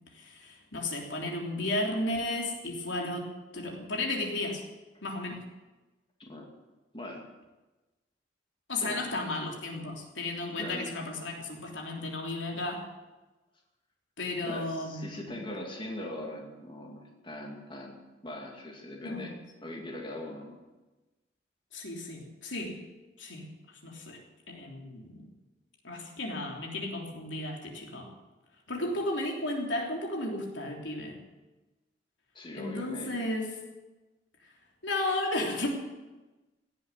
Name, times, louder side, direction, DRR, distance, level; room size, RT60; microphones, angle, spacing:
voice 1, 0.1-3.3 3.5-4.6 5.0-5.4 8.7-12.8 14.2-15.4 19.0-19.3 21.7-22.8 23.2-23.5 23.8-24.2 24.5-25.3 25.8-28.1 28.7-31.2 32.5-33.5 34.8-35.7, left 2 dB, 85° left, 0 dB, 3.4 m, -34 dB
voice 2, 6.9-7.3 8.8-9.1 10.5-10.9 14.4-19.3 19.6-20.6 32.3-33.1, left 1 dB, 30° left, 0 dB, 2.5 m, -41 dB
17.0 x 8.0 x 9.9 m, 1.1 s
head